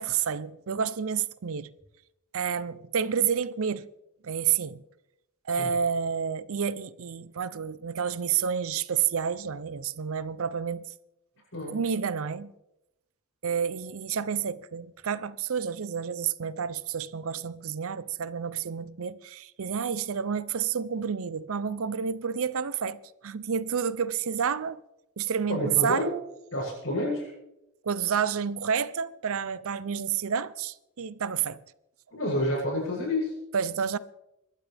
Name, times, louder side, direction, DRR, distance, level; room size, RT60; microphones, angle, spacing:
voice 1, 0.0-1.7 2.3-3.9 4.2-4.8 5.5-10.9 11.7-12.5 13.4-24.8 25.2-26.1 27.8-31.6 33.5-34.0, right 7 dB, 65° right, 0.6 m, -29 dB
voice 2, 25.5-26.1 26.5-27.3 32.1-33.3, left 1 dB, 65° left, 7.8 m, -29 dB
26.0 x 12.5 x 3.5 m
head